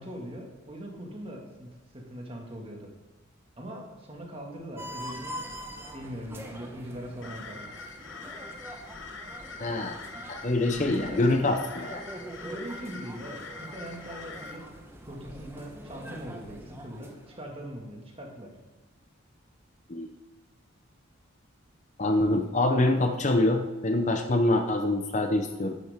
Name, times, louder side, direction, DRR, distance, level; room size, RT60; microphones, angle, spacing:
voice 1, 0.0-2.9 3.6-5.6 5.9-7.7 10.8-11.5 12.4-14.6 15.1-18.5, equal, 25° right, 0 dB, 1.9 m, -41 dB
sound 1, 4.8-17.5, equal, 10° right, 1.0 m, -44 dB
sound 2, 7.2-14.6, left 3 dB, 60° left, 1.2 m, -44 dB
voice 2, 9.6-10.0 10.3-12.0 19.9-20.1 22.0-25.7, left 2 dB, 35° left, 5 dB, 0.7 m, -25 dB
11.0 x 10.0 x 3.6 m, 1.1 s
head